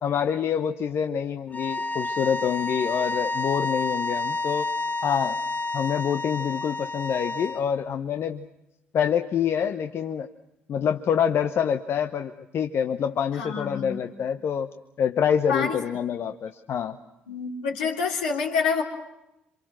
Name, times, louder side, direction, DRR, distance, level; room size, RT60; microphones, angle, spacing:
voice 1, 0.0-4.7 5.0-5.4 5.7-8.5 8.9-10.3 10.7-14.7 15.0-17.0, left 8 dB, 50° left, 7 dB, 1.0 m, -26 dB
sound 1, 1.5-7.6, left 2 dB, 30° left, 1.1 m, -29 dB
voice 2, 13.4-14.0 15.5-15.8 17.3-18.8, left 5 dB, 80° left, 0 dB, 3.4 m, -27 dB
27.5 x 26.0 x 6.2 m, 0.90 s
hypercardioid pair, 50°, 5 cm